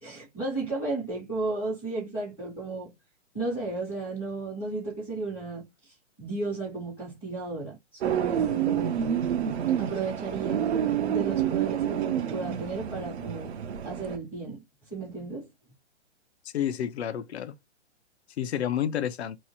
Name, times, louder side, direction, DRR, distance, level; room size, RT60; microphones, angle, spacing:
voice 1, 0.0-2.9 3.3-9.0 9.8-10.7 11.1-13.5 13.8-14.6 14.9-15.5, right 3 dB, 5° left, 0.4 m, -34 dB
sound 1, 8.0-14.2, right 9 dB, 65° right, 0.6 m, -28 dB
voice 2, 16.5-17.6 18.4-19.4, left 9 dB, 65° left, 0.5 m, -29 dB
2.8 x 2.0 x 2.8 m
hypercardioid pair, 155°, 35 cm